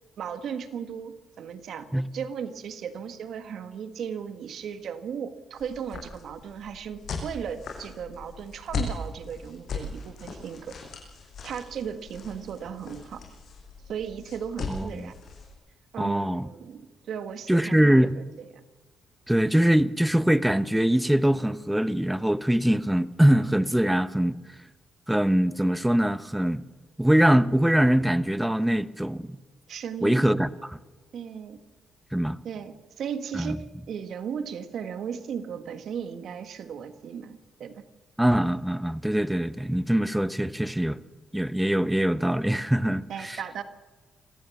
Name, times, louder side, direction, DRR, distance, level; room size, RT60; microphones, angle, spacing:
voice 1, 0.2-1.9 2.1-10.8 11.4-13.2 13.9-15.1 15.9-18.6 29.7-30.3 31.1-31.6 32.4-37.8 43.1-43.6, right 7 dB, 70° right, 1.7 m, -36 dB
sound 1, 5.5-15.5, left 4 dB, 65° left, 6.4 m, -38 dB
voice 2, 14.7-15.1 16.0-16.5 17.5-18.1 19.3-24.4 25.1-26.6 27.0-29.4 30.0-30.8 32.1-32.4 33.3-33.6 38.2-41.0 41.3-43.4, right 1 dB, 5° right, 1.0 m, -23 dB
26.0 x 15.5 x 7.2 m
cardioid pair, 70°, 0 cm